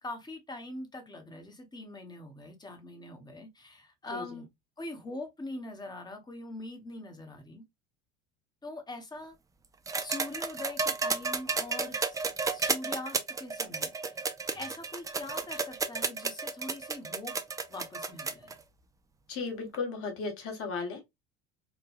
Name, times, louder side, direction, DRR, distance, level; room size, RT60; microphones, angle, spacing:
voice 1, 0.0-4.5 4.8-7.6 8.6-9.4 10.0-14.2 14.5-17.4 17.7-18.6, left 2 dB, 15° left, 0.9 m, -43 dB
voice 2, 4.1-4.4 19.3-21.0, left 4 dB, 45° left, 1.3 m, -35 dB
sound 1, 9.9-18.5 19.7-19.8, right 4 dB, 10° right, 0.3 m, -32 dB
3.2 x 2.2 x 2.4 m
hypercardioid pair, 75°, 31 cm